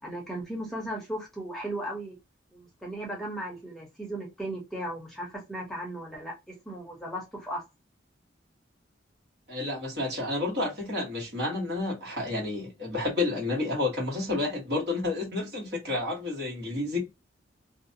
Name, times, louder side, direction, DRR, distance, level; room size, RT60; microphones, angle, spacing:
voice 1, 0.0-2.2 2.5-7.6, right 1 dB, ahead, 0.8 m, -36 dB
voice 2, 9.5-17.0, left 2 dB, 60° right, 1.4 m, -30 dB
2.6 x 2.2 x 2.6 m
head